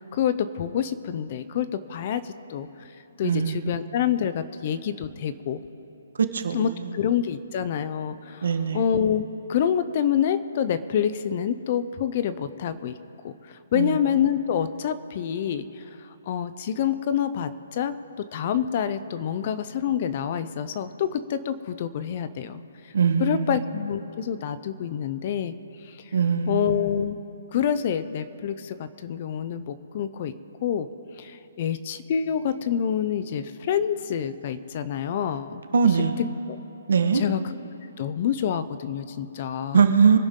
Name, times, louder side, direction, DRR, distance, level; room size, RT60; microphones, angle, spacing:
voice 1, 0.0-2.9 3.2-5.6 6.5-13.0 13.2-22.9 23.2-25.5 25.8-26.1 26.5-27.2 27.5-30.3 30.6-30.9 31.2-35.6 36.5-36.6 37.1-37.4 38.0-39.8, left 8 dB, 30° left, 13 dB, 0.4 m, -27 dB
voice 2, 3.2-3.7 6.3-6.9 8.4-8.8 13.7-14.0 22.9-23.6 26.1-26.8 35.7-36.2 36.9-37.2 39.7-40.2, right 6 dB, 60° right, 8 dB, 1.2 m, -22 dB
24.0 x 10.5 x 3.7 m, 2.9 s
hypercardioid pair, 180°, 0 cm